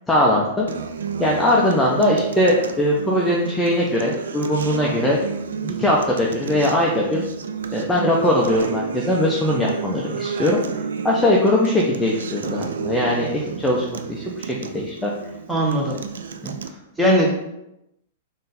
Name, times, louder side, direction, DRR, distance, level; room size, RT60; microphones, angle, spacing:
voice 1, 0.1-0.7 1.2-5.2 5.6-7.2 7.7-13.3 13.6-15.1 15.9-16.0 16.4-16.5, left 1 dB, 10° left, -4 dB, 0.6 m, -20 dB
Acoustic guitar, 0.7-16.7, right 6 dB, 75° right, 0.3 m, -31 dB
voice 2, 15.5-16.0 17.0-17.4, equal, 10° right, -3 dB, 1.2 m, -19 dB
3.7 x 2.7 x 4.0 m, 0.87 s
hypercardioid pair, 115°, 0 cm